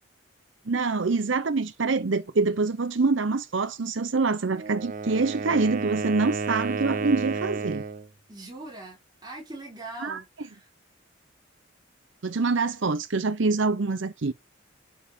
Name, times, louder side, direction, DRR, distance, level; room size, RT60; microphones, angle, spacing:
voice 1, 0.7-7.8 10.0-10.2 12.2-14.3, right 3 dB, 65° right, 0.7 m, -25 dB
Wind instrument woodwind instrument, 4.5-8.1, right 4 dB, 40° right, 1.0 m, -31 dB
voice 2, 8.3-10.7, right 2 dB, 20° right, 5.1 m, -42 dB
11.5 x 4.8 x 6.9 m
head